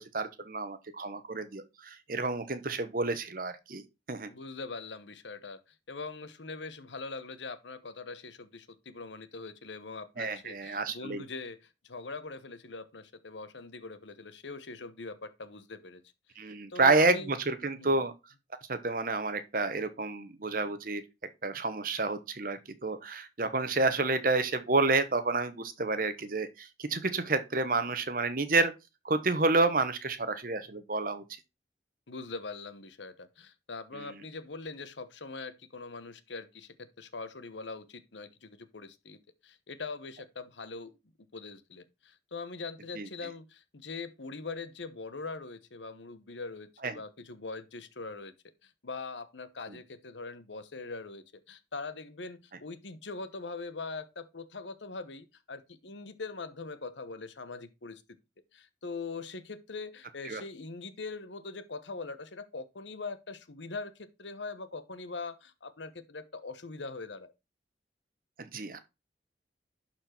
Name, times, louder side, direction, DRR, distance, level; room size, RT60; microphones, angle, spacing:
voice 1, 0.0-3.8 4.1-4.3 10.2-11.2 16.4-18.1 18.7-21.0 21.4-28.7 29.0-31.2 33.9-34.2 43.0-43.1 46.8-46.9 60.2-60.4 68.4-68.8, right 3 dB, 50° right, 1.0 m, -29 dB
voice 2, 4.3-16.0 16.7-17.3 17.7-18.0 32.1-40.9 41.3-48.3 48.6-58.0 58.5-67.3, left 3 dB, 85° left, 1.1 m, -42 dB
11.5 x 4.4 x 4.4 m
head